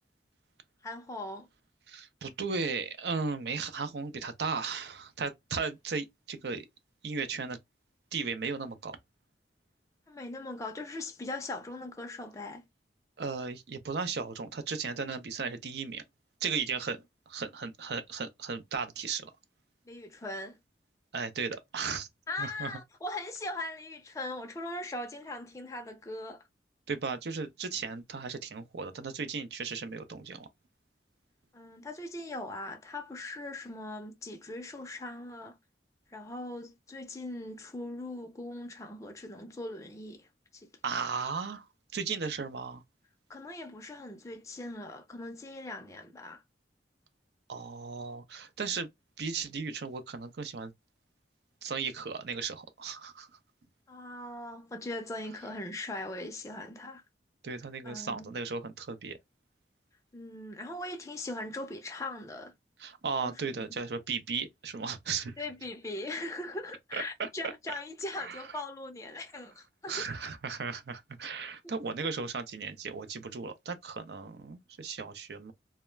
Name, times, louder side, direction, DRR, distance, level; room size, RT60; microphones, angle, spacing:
voice 1, 0.8-1.5 10.1-12.7 19.9-20.6 22.3-26.4 31.5-35.6 36.1-40.7 43.3-46.4 53.9-57.0 57.8-58.3 60.1-62.5 63.2-63.6 65.4-70.1 71.6-71.9, left 2 dB, 20° left, 0.4 m, -40 dB
voice 2, 1.9-6.7 7.0-7.6 8.1-9.0 13.2-16.0 16.4-17.0 17.3-19.3 21.1-22.1 22.4-22.7 26.9-30.5 40.8-41.7 41.9-42.8 47.5-48.9 49.2-50.7 51.6-53.3 57.4-59.2 62.8-65.3 66.9-67.3 68.2-68.4 69.9-75.5, right 5 dB, 65° right, 0.5 m, -36 dB
2.2 x 2.1 x 3.0 m
head